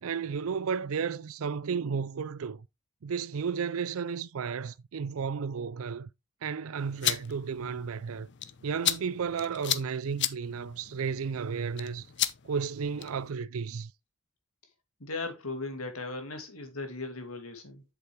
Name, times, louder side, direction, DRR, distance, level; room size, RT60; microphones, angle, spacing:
voice 1, 0.0-2.7 3.0-6.1 6.4-8.3 8.6-12.1 12.4-13.9, right 6 dB, 75° right, 0.5 m, -33 dB
sound 1, 6.8-13.3, left 12 dB, 55° left, 0.7 m, -35 dB
voice 2, 15.0-17.8, left 3 dB, 85° left, 2.5 m, -37 dB
8.1 x 6.9 x 3.2 m
head